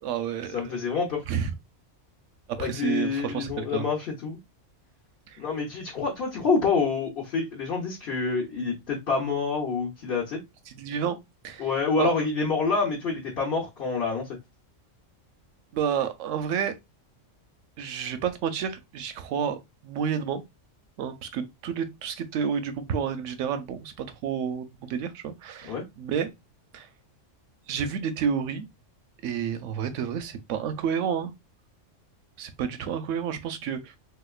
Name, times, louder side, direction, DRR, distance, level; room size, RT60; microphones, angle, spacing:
voice 1, 0.0-0.8 1.3-1.5 2.5-3.9 5.3-5.4 10.7-11.2 11.4-11.7 12.0-12.1 15.7-16.7 17.8-20.4 21.0-23.9 24.2-26.3 26.7-26.9 27.7-28.6 29.2-31.3 32.4-33.9, right 7 dB, 80° right, 0.9 m, -30 dB
voice 2, 0.5-1.2 2.6-4.4 5.4-10.4 11.6-14.4 25.6-25.8, left 4 dB, 50° left, 1.0 m, -27 dB
3.4 x 2.8 x 2.3 m
omnidirectional pair, 1.3 m